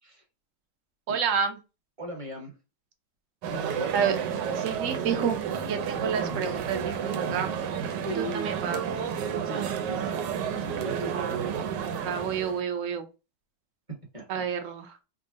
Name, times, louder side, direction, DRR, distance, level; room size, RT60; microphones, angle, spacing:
voice 1, 1.1-1.6 3.9-4.2 4.5-7.5 8.1-8.8 11.1-11.4 12.0-13.1 14.3-15.0, right 7 dB, 60° right, 6 dB, 0.9 m, -29 dB
voice 2, 2.0-2.5 3.5-3.9 8.0-8.5 9.4-10.2 10.8-11.1 14.1-14.4, equal, 20° right, 0 dB, 1.1 m, -37 dB
sound 1, 3.4-12.6, right 7 dB, 90° right, 1.3 m, -31 dB
3.6 x 2.1 x 3.8 m, 0.29 s
omnidirectional pair, 1.9 m